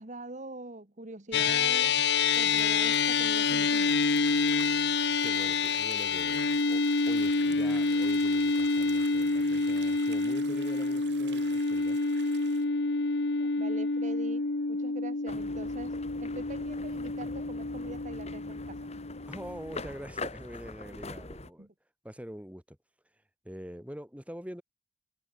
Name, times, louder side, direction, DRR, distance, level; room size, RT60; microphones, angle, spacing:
voice 1, 0.0-2.0 2.3-3.9 13.4-14.4 14.7-18.9 21.6-21.7, right 2 dB, 40° right, 1.7 m, -43 dB
sound 1, 1.3-19.9, left 4 dB, 65° left, 1.1 m, -28 dB
sound 2, 2.3-12.7, right 8 dB, 70° right, 7.0 m, -51 dB
voice 2, 5.2-12.0 19.3-21.7 22.0-22.8 23.4-24.6, equal, 5° right, 5.2 m, -44 dB
sound 3, 15.3-21.5, left 2 dB, 35° left, 3.9 m, -43 dB
head